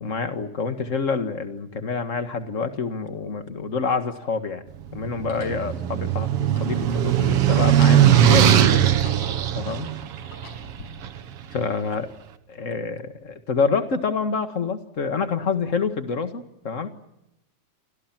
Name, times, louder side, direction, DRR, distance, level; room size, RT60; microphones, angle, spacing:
voice 1, 0.0-4.6 4.9-8.9 9.5-9.9 11.5-12.1 12.5-16.9, left 5 dB, 35° left, 8 dB, 1.4 m, -27 dB
sound 1, 2.6-2.7 3.6-4.4 5.1-5.6 6.4-7.3 7.6-8.3 8.7-9.6 10.1-10.9, left 3 dB, 80° left, 6.8 m, -45 dB
sound 2, 4.9-11.2, right 10 dB, 60° right, 2.0 m, -19 dB
29.5 x 26.5 x 6.0 m, 0.88 s
omnidirectional pair, 3.4 m